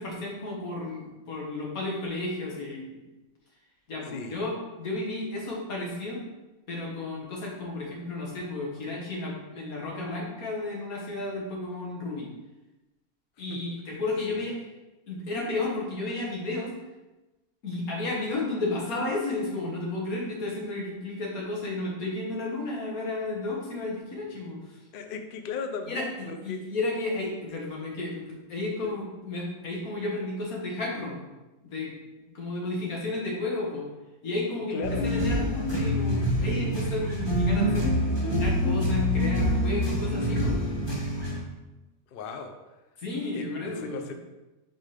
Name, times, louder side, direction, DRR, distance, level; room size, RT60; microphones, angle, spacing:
voice 1, 0.0-3.0 3.9-6.2 6.7-12.3 13.4-14.6 15.1-16.7 17.6-24.8 25.8-31.2 31.6-31.9 32.3-33.9 34.2-40.7 43.0-44.1, left 2 dB, 90° left, -3 dB, 2.0 m, -33 dB
voice 2, 4.1-4.5 13.5-13.6 24.9-26.6 34.7-35.1 42.1-42.5 43.3-43.5 43.8-44.1, left 5 dB, 55° left, 6 dB, 0.6 m, -36 dB
sound 1, 34.8-41.4, equal, 20° left, 1.3 m, -26 dB
5.1 x 3.8 x 4.9 m, 1.1 s
omnidirectional pair, 1.5 m